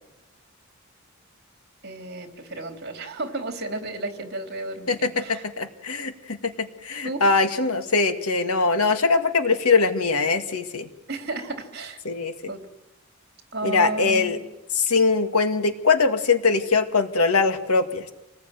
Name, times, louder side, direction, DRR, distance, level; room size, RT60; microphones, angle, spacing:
voice 1, 1.8-5.4 7.0-7.2 11.1-12.0 12.5-12.7 13.5-14.4, right 2 dB, 50° right, 5 dB, 3.5 m, -33 dB
voice 2, 4.9-10.9 12.1-12.5 13.6-14.4 14.7-18.1, left 4 dB, 90° left, 8 dB, 2.0 m, -22 dB
27.0 x 19.5 x 9.3 m, 0.98 s
head